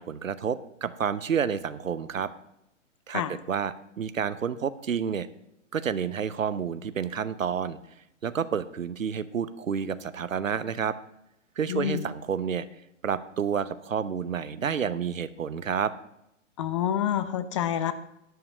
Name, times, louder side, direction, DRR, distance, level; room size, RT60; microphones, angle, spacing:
voice 1, 0.0-2.3 3.1-5.3 5.7-7.8 8.2-11.0 11.6-12.7 13.0-15.9, right 7 dB, 80° right, 15 dB, 0.8 m, -29 dB
voice 2, 11.7-12.1 16.6-17.9, left 10 dB, 25° left, 13 dB, 0.4 m, -27 dB
11.0 x 5.8 x 8.1 m, 0.82 s
figure-of-eight pair, 120°, 39 cm